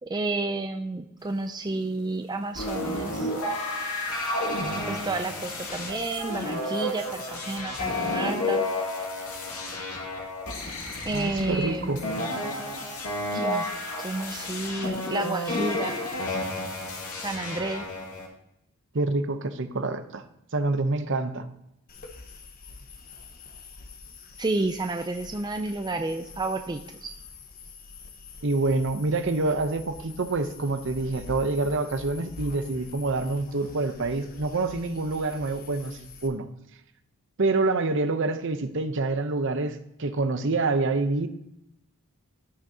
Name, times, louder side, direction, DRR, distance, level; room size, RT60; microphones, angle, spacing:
voice 1, 0.0-3.3 4.8-8.6 11.1-12.3 13.3-13.7 14.0-16.0 17.1-17.8 24.4-27.1, right 2 dB, 20° right, 0.4 m, -31 dB
sound 1, 2.6-18.3, left 1 dB, 85° left, 2.2 m, -31 dB
voice 2, 11.1-12.0 18.9-20.2 20.5-21.5 28.4-36.5 37.4-41.3, right 3 dB, 55° right, 0.8 m, -27 dB
sound 2, 21.9-36.3, left 4 dB, 40° left, 1.0 m, -45 dB
15.5 x 6.2 x 2.8 m
head